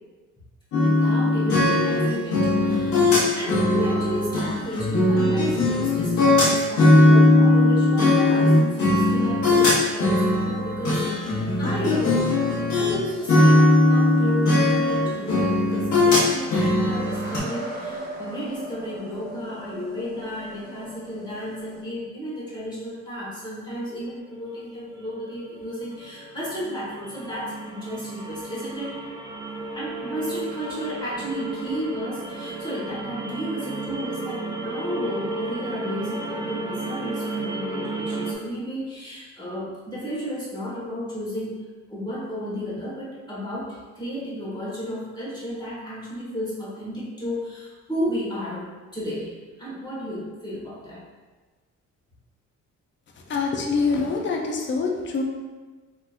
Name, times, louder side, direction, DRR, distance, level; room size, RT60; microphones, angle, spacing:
sound 1, 0.7-13.0 13.3-17.4, left 2 dB, 75° left, 1.1 m, -19 dB
voice 1, 0.7-12.3 12.7-29.0 29.7-41.6 41.9-51.0, equal, 15° left, -8 dB, 1.5 m, -33 dB
sound 2, 11.2-21.8, right 1 dB, 45° right, 1.2 m, -41 dB
sound 3, 24.3-38.4, right 2 dB, 15° right, 0.5 m, -34 dB
voice 2, 53.3-55.2, left 4 dB, 40° left, 1 dB, 0.6 m, -25 dB
3.4 x 2.9 x 2.5 m, 1.3 s
cardioid pair, 90°, 30 cm